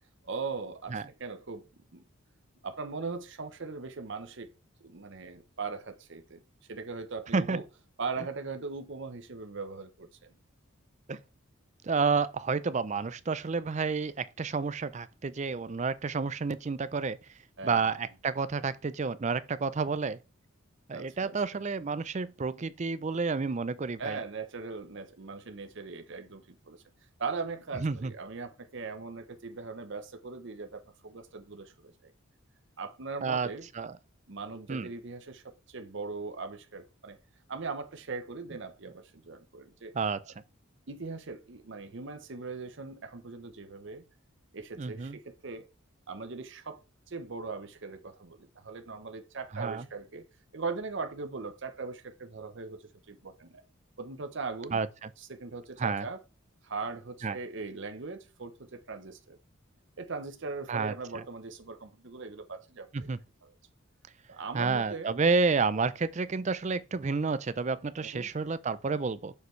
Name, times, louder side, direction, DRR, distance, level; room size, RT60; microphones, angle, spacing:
voice 1, 0.2-1.7 1.9-2.0 2.6-4.5 4.8-6.4 6.7-7.6 8.0-10.3 17.6-17.9 20.9-21.4 24.0-26.8 27.2-32.1 32.8-33.7 34.3-37.2 37.5-40.0 40.9-44.0 44.5-45.6 46.1-50.2 50.5-53.6 54.0-54.8 55.2-56.2 56.6-59.4 60.0-63.1 64.3-65.1 68.1-68.3, right 4 dB, 60° right, 0.8 m, -40 dB
voice 2, 11.8-17.2 17.6-20.2 20.9-24.2 27.8-28.1 33.2-33.5 33.7-33.9 34.7-34.9 39.9-40.2 44.8-45.2 49.5-49.8 54.7-55.1 55.8-56.1 57.2-57.4 60.7-61.2 62.9-63.2 64.5-69.3, right 4 dB, 35° right, 0.4 m, -30 dB
6.8 x 6.7 x 3.2 m
head